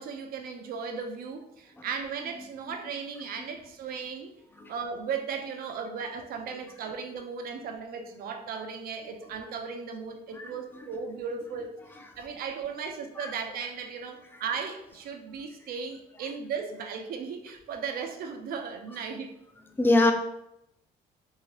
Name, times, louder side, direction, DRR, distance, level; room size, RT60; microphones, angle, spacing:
voice 1, 0.0-4.3 4.7-11.8 12.2-19.4, right 6 dB, 60° right, 4 dB, 0.5 m, -36 dB
voice 2, 10.4-10.9 13.2-13.3 19.8-20.1, left 2 dB, 10° left, 3 dB, 0.4 m, -24 dB
2.8 x 2.7 x 2.9 m, 0.82 s
cardioid pair, 110°, 17 cm